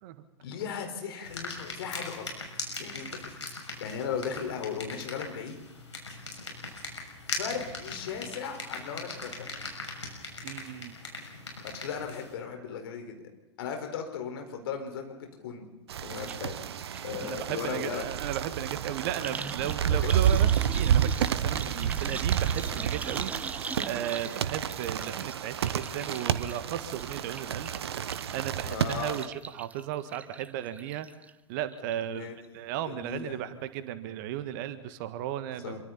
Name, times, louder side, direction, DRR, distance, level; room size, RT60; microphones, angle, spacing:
voice 1, 0.4-2.3 2.8-3.3 3.8-5.6 7.3-9.5 11.6-13.2 13.6-15.7 16.0-16.5 17.0-18.0 19.9-20.1 28.7-29.2 32.0-33.4 35.6-35.8, left 7 dB, 55° left, 4 dB, 4.6 m, -37 dB
sound 1, 1.2-12.3, left 3 dB, 80° left, 6.5 m, -40 dB
voice 2, 10.4-10.9 17.2-23.6 23.8-27.7 28.3-31.1 31.5-35.8, right 11 dB, 45° right, 12 dB, 1.6 m, -35 dB
sound 2, 15.9-29.3, right 9 dB, 60° right, 1.1 m, -30 dB
sound 3, 16.3-16.4 16.7-31.3 31.7-32.2 32.4-32.5, right 4 dB, 10° right, 0.6 m, -42 dB
27.0 x 24.0 x 4.2 m, 1.0 s
figure-of-eight pair, 95°, 15 cm